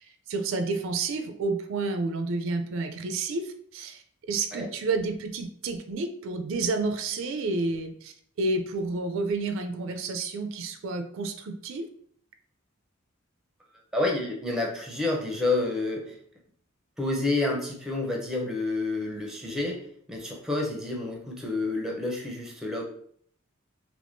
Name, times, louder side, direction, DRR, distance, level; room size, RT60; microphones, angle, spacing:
voice 1, 0.0-11.9, right 3 dB, 65° right, 6 dB, 0.4 m, -30 dB
voice 2, 13.9-16.1 17.0-19.8 20.1-22.8, left 2 dB, ahead, -1 dB, 0.5 m, -29 dB
3.4 x 2.9 x 2.5 m, 0.63 s
head